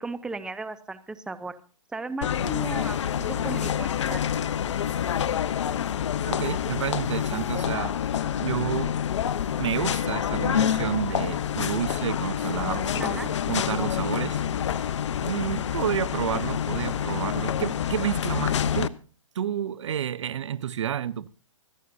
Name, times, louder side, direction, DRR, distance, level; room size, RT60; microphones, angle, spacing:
voice 1, 0.0-1.6 1.9-4.2 13.0-13.3, right 3 dB, 5° right, 0.7 m, -36 dB
sound 1, 2.2-18.9, left 9 dB, 60° left, 0.7 m, -27 dB
voice 2, 6.3-8.9 9.6-14.9 15.2-18.9 19.3-21.3, right 9 dB, 65° right, 0.6 m, -30 dB
25.5 x 9.3 x 2.7 m
hypercardioid pair, 135°, 17 cm